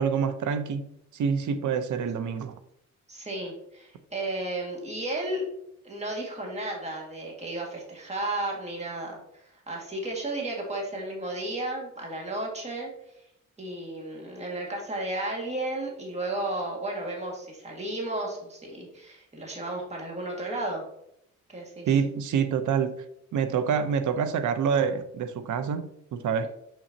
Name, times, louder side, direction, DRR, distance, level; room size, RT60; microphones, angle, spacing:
voice 1, 0.0-2.5 21.9-23.0 23.3-26.5, right 7 dB, 75° right, 10 dB, 0.7 m, -27 dB
voice 2, 3.1-5.4 5.8-12.9 13.6-20.8 21.5-21.9, right 2 dB, 20° right, -1 dB, 1.8 m, -33 dB
6.2 x 6.0 x 2.7 m, 0.75 s
cardioid pair, 105°, 31 cm